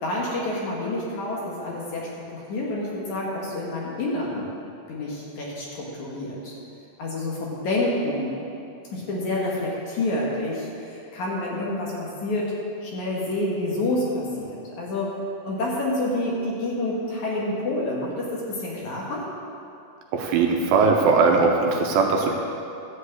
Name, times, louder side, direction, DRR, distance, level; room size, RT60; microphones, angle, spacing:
voice 1, 0.0-4.5 4.9-6.5 7.0-8.3 8.9-12.5 12.8-15.1 15.4-19.2, left 1 dB, 60° left, -4 dB, 2.5 m, -28 dB
voice 2, 20.1-22.3, right 4 dB, 75° right, 1 dB, 2.4 m, -20 dB
13.0 x 5.2 x 8.2 m, 2.6 s
omnidirectional pair, 4.5 m